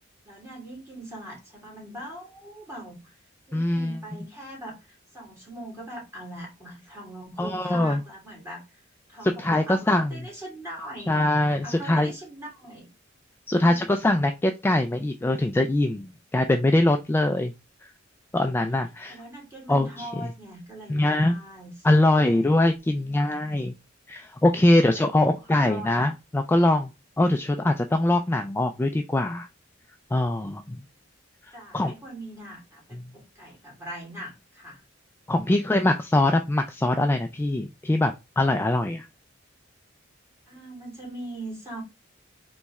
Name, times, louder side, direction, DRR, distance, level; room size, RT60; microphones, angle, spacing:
voice 1, 0.2-3.2 3.5-8.8 9.1-12.9 19.0-22.6 25.2-26.1 31.5-34.8 40.5-41.8, right 1 dB, 15° right, 2.6 m, -41 dB
voice 2, 3.5-4.0 7.4-8.0 9.2-10.2 11.1-12.1 13.5-17.5 17.8-17.9 18.3-19.2 19.7-20.1 20.9-21.4 21.8-23.7 24.1-26.9 27.2-29.5 30.1-30.8 31.7-31.9 32.9-33.0 35.3-39.1, left 1 dB, 10° left, 0.3 m, -23 dB
4.1 x 3.1 x 3.5 m
head